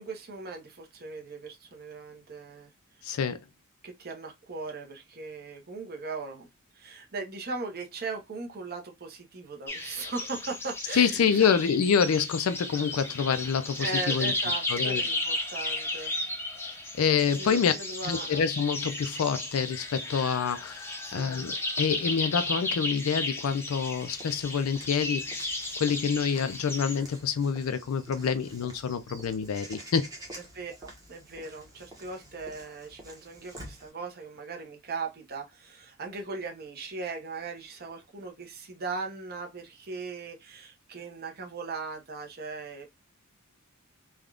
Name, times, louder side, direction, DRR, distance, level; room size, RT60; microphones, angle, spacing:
voice 1, 0.0-2.7 3.0-3.2 3.8-6.5 6.7-11.5 13.8-16.2 17.4-18.5 21.0-21.4 30.3-42.9, right 4 dB, 45° right, 0.8 m, -39 dB
voice 2, 3.0-3.4 10.9-14.3 14.7-15.0 17.0-17.7 18.0-30.1, left 6 dB, 70° left, 0.4 m, -27 dB
sound 1, 9.7-27.0, left 2 dB, 10° left, 0.6 m, -34 dB
Walk footsteps / Bird vocalization bird call bird song, 23.9-33.9, right 1 dB, 15° right, 1.0 m, -49 dB
3.4 x 2.3 x 2.3 m
head